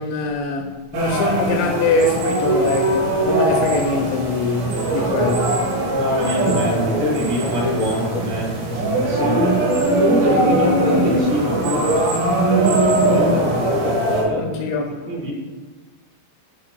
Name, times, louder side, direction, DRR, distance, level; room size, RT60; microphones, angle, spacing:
voice 1, 0.0-5.7 14.4-15.1, left 3 dB, 80° left, 2.6 m, -23 dB
sound 1, 0.9-14.2, right 2 dB, 85° right, 3.8 m, -20 dB
voice 2, 4.7-5.3 5.9-9.6 9.9-14.5 15.1-15.3, left 1 dB, 65° right, 3.9 m, -24 dB
12.0 x 4.5 x 2.2 m
omnidirectional pair, 5.3 m